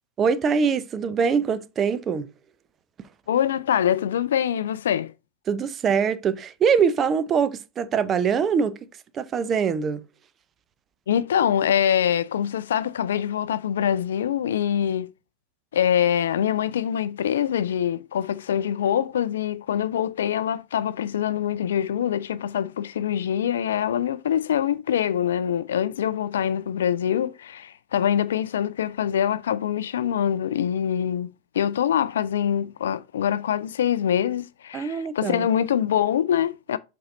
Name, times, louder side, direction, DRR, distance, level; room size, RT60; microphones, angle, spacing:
voice 1, 0.2-2.3 5.5-8.8 9.1-10.0 34.7-35.5, right 6 dB, 25° right, 0.7 m, -23 dB
voice 2, 3.3-5.1 11.1-15.1 15.7-31.3 31.5-36.8, left 9 dB, 60° left, 0.4 m, -24 dB
7.9 x 3.8 x 4.0 m
figure-of-eight pair, 90°, 0 cm